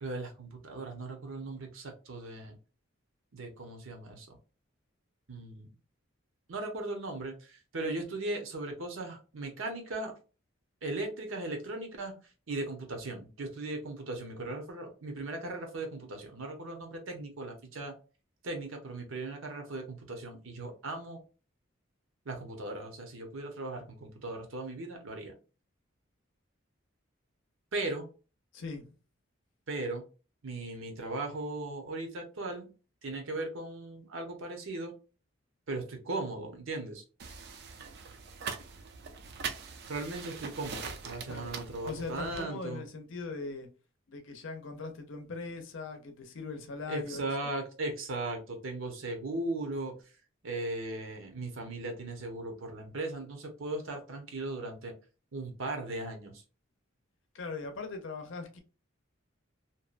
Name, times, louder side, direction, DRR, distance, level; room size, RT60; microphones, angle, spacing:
voice 1, 0.0-2.6 3.3-4.4 5.3-5.7 6.5-10.1 10.8-12.1 12.5-17.9 18.4-21.2 22.3-25.3 27.7-28.1 29.7-30.0 30.4-32.7 33.0-34.9 35.7-37.0 39.9-42.8 46.9-49.9 50.4-54.9 55.3-56.4, right 2 dB, 70° right, 0.7 m, -38 dB
voice 2, 28.5-28.9 41.3-41.5 41.8-43.7 44.1-47.2 57.3-58.6, left 3 dB, 65° left, 0.6 m, -40 dB
sound 1, 37.2-42.4, right 5 dB, 50° right, 0.4 m, -42 dB
2.7 x 2.2 x 2.4 m
head